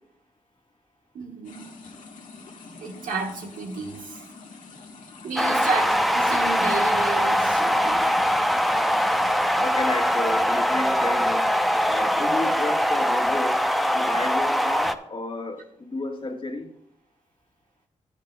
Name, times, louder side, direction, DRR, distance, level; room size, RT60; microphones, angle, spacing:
voice 1, 1.1-1.8 2.8-4.2 5.2-8.1, right 4 dB, 85° right, 2 dB, 1.4 m, -32 dB
sound 1, 1.4-9.5, left 3 dB, 75° left, 1.5 m, -46 dB
sound 2, 5.4-14.9, equal, ahead, 0.7 m, -22 dB
voice 2, 9.6-11.6 11.8-13.7 13.9-16.7, left 2 dB, 40° left, 3 dB, 1.6 m, -32 dB
15.5 x 9.2 x 2.3 m, 0.76 s
supercardioid pair, 45°, 13 cm